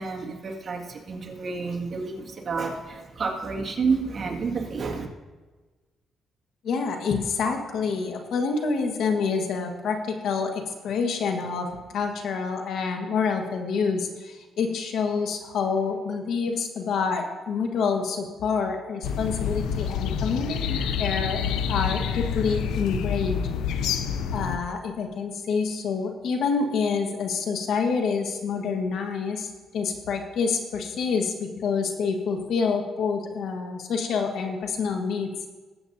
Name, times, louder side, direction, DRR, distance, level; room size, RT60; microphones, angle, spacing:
voice 1, 0.0-5.1, right 4 dB, 45° right, 0 dB, 2.0 m, -29 dB
voice 2, 6.6-23.4 24.3-29.5 29.7-35.3, left 5 dB, 75° left, 4 dB, 1.4 m, -27 dB
sound 1, 19.0-24.6, left 7 dB, 90° left, 0.6 m, -28 dB
20.5 x 8.1 x 2.7 m, 1.3 s
cardioid pair, 90°, 0 cm